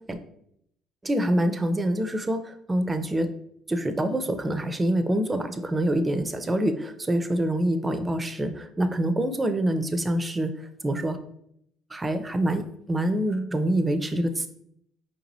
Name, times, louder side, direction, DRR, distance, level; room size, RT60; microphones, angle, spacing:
voice 1, 1.0-3.3 3.7-10.5 10.8-11.2 11.9-14.5, right 1 dB, 20° right, 8 dB, 0.5 m, -26 dB
4.7 x 2.9 x 2.7 m, 0.72 s
supercardioid pair, 75°, 0 cm